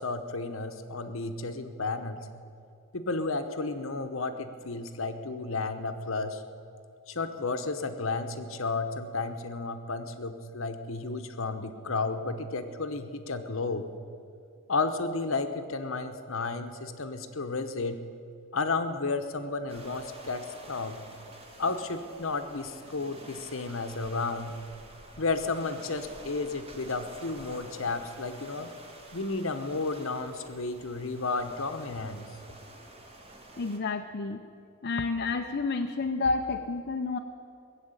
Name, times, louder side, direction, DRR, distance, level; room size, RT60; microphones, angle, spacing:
voice 1, 0.0-2.2 2.9-6.4 7.1-13.9 14.7-18.0 18.5-21.0 21.6-24.5 25.2-28.7 29.1-32.3, left 3 dB, 65° left, 8 dB, 1.0 m, -32 dB
sound 1, 19.7-33.8, right 1 dB, 25° right, 1.7 m, -49 dB
voice 2, 33.6-34.4 34.8-37.2, left 3 dB, 50° left, 3 dB, 0.6 m, -30 dB
19.0 x 7.5 x 8.9 m, 2.4 s
head